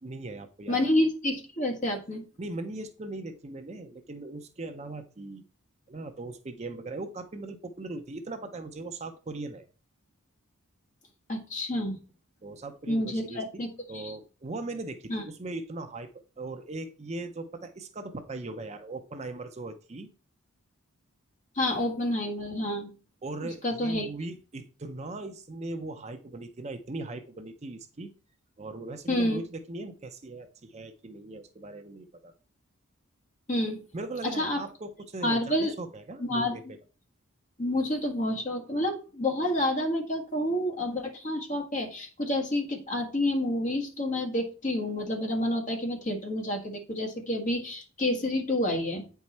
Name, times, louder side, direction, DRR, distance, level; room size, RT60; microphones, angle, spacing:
voice 1, 0.0-0.8 2.4-5.4 5.9-9.6 12.4-20.1 23.2-28.1 28.6-32.3 33.9-36.8, right 2 dB, 30° right, 8 dB, 0.5 m, -39 dB
voice 2, 0.7-2.2 11.3-12.0 12.9-13.7 13.9-14.1 15.1-15.2 21.5-22.9 23.6-24.1 29.1-29.4 33.5-33.8 34.4-34.6 35.2-35.7 36.2-36.6 37.6-49.0, left 1 dB, 35° left, 2 dB, 1.5 m, -29 dB
8.7 x 4.7 x 4.2 m, 0.36 s
head